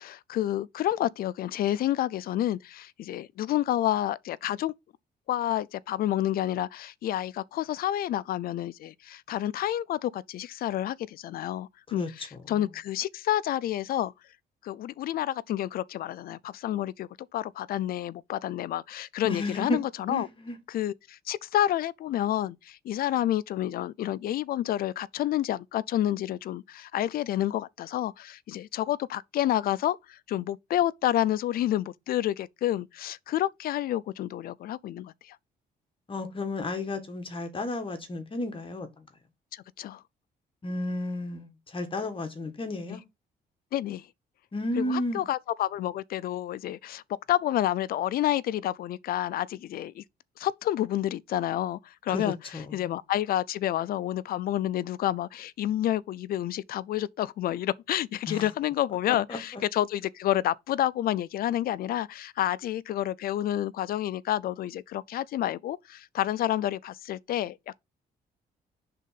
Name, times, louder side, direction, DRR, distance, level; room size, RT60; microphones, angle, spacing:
voice 1, 0.0-4.7 5.3-14.1 14.6-20.3 20.7-35.4 39.5-40.0 42.9-43.0 43.7-44.1 44.8-47.0 47.3-50.0 50.4-52.4 52.7-67.8, left 12 dB, 60° left, 0.4 m, -29 dB
voice 2, 19.2-19.8 20.1-20.6 36.1-39.0 40.6-43.0 44.5-45.2 52.1-52.9 58.3-58.5 59.1-59.6, left 2 dB, 30° left, 1.4 m, -32 dB
5.3 x 3.7 x 5.7 m
cardioid pair, 120°, 17 cm